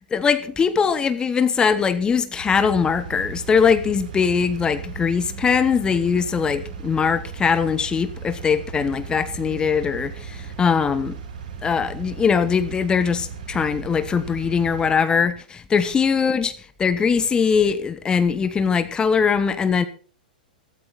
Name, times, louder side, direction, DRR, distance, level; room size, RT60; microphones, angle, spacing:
voice 1, 0.1-11.2 11.6-16.5 16.8-19.8, left 6 dB, 15° left, 12 dB, 1.0 m, -21 dB
Engine, 2.3-15.0, right 6 dB, 60° right, 6.9 m, -36 dB
15.5 x 13.0 x 4.0 m, 0.41 s
figure-of-eight pair, 100°, 5 cm